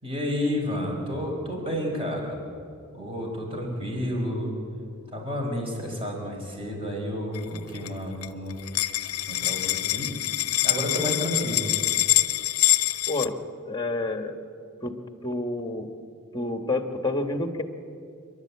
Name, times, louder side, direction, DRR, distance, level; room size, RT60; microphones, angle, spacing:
voice 1, 0.0-2.4 2.9-4.5 5.1-8.6 9.0-10.1 10.6-11.7, equal, 25° right, -1 dB, 4.9 m, -30 dB
sound 1, 7.4-7.9 8.2-8.3 8.5-13.3, left 16 dB, 80° left, 0.7 m, -25 dB
voice 2, 13.7-14.4 14.8-14.9 15.2-15.9 16.3-17.6, left 2 dB, 20° left, 7 dB, 1.4 m, -28 dB
27.5 x 12.0 x 8.4 m, 2.5 s
head